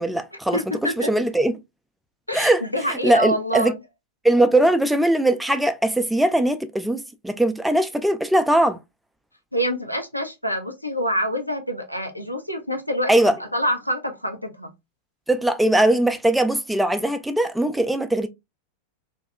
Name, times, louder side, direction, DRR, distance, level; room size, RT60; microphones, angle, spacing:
voice 1, 0.0-1.5 2.3-2.6 2.9-3.7 4.2-8.8 13.1-13.4 15.3-18.3, right 1 dB, 5° right, 0.3 m, -20 dB
voice 2, 0.5-1.1 2.3-3.8 9.5-14.7, equal, 90° left, 0.5 m, -26 dB
2.7 x 2.2 x 2.3 m
figure-of-eight pair, 90°, 0 cm